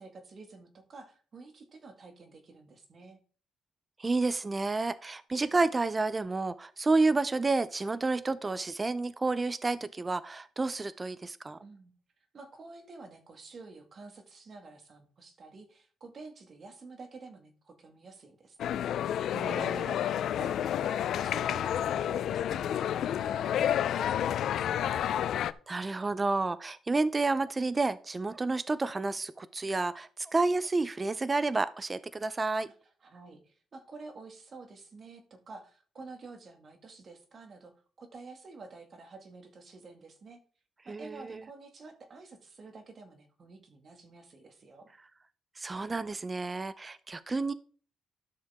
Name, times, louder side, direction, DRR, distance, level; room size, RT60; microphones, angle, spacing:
voice 1, 0.0-3.2 11.6-11.9 12.3-25.0 32.7-32.8 33.0-40.4 40.8-44.9, right 3 dB, 40° right, 5 dB, 1.9 m, -49 dB
voice 2, 4.0-11.6 19.3-19.7 25.7-32.7 40.9-41.4 45.6-47.5, right 3 dB, 20° right, 15 dB, 0.5 m, -30 dB
sound 1, 18.6-25.5, left 10 dB, 70° left, 0.4 m, -30 dB
12.0 x 6.5 x 3.6 m, 0.43 s
cardioid pair, 120°, 0 cm